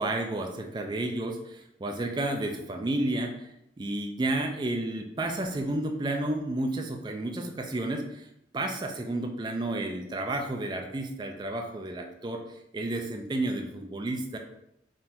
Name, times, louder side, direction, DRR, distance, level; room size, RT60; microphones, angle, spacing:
voice 1, 0.0-8.3 8.5-14.4, right 2 dB, 25° right, 3 dB, 0.3 m, -31 dB
3.7 x 2.5 x 4.3 m, 0.81 s
head